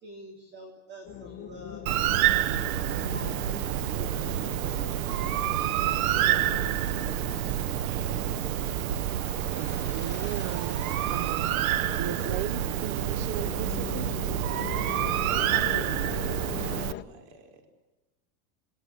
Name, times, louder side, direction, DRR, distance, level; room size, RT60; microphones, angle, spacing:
voice 1, 0.0-2.6 3.1-3.6 4.0-5.6, equal, 25° right, 2 dB, 3.3 m, -47 dB
sound 1, 1.0-17.0, left 11 dB, 25° left, 1.4 m, -41 dB
Bird, 1.9-16.9, right 12 dB, 85° right, 1.0 m, -28 dB
voice 2, 9.5-11.7 12.0-14.1, right 11 dB, 55° right, 14 dB, 1.1 m, -37 dB
voice 3, 15.3-17.7, right 4 dB, 70° right, 4 dB, 4.8 m, -44 dB
28.5 x 19.5 x 8.5 m, 1.0 s
supercardioid pair, 150°, 41 cm